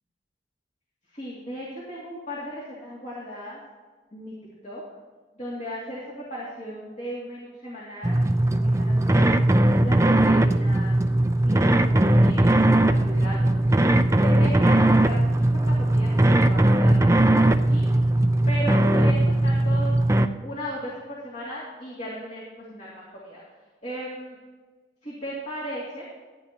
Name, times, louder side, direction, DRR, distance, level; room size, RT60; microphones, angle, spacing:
voice 1, 1.1-3.6 4.1-4.3 4.6-4.8 5.4-9.3 9.8-10.9 11.4-13.8 14.2-17.9 18.5-20.0 20.4-22.4 22.7-23.4 23.8-24.4 25.0-26.0, equal, 45° left, -6 dB, 2.5 m, -36 dB
sound 1, 8.0-20.3, right 1 dB, 15° right, 0.4 m, -19 dB
15.0 x 9.2 x 2.9 m, 1.4 s
head